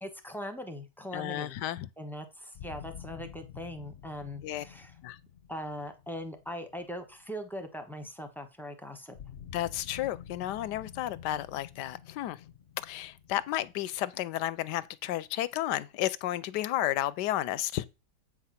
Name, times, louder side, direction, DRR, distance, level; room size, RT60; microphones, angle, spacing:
voice 1, 0.0-1.6 2.0-5.0 5.5-9.2, equal, ahead, 0.8 m, -40 dB
voice 2, 1.1-1.9 4.4-4.6 5.0-5.2 9.5-12.4 12.8-17.8, left 13 dB, 80° left, 1.2 m, -32 dB
sound 1, 2.5-7.5 9.1-14.8, left 8 dB, 55° left, 0.8 m, -49 dB
8.4 x 4.8 x 5.8 m
omnidirectional pair, 1.8 m